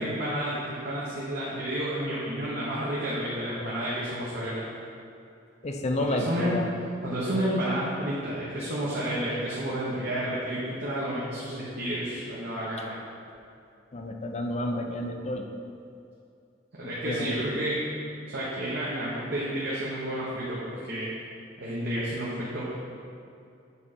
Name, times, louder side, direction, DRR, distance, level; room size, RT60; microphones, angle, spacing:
voice 1, 0.0-4.6 6.0-6.6 7.0-13.0 16.7-17.8 18.3-21.1 21.6-22.6, right 1 dB, 60° right, -8 dB, 1.1 m, -31 dB
voice 2, 5.6-6.7 13.9-15.4 17.0-17.4, left 1 dB, 35° left, 4 dB, 0.5 m, -30 dB
7.2 x 4.9 x 4.3 m, 2.6 s
head